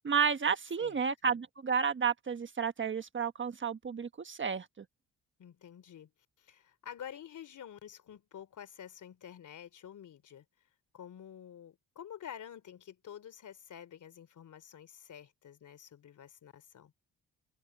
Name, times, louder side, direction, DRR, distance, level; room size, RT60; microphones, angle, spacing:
voice 1, 0.0-4.8, right 6 dB, 35° right, 1.4 m, -31 dB
voice 2, 5.4-6.1 6.4-10.4 10.9-16.9, left 9 dB, 60° left, 3.2 m, -49 dB
cardioid pair, 90°, 34 cm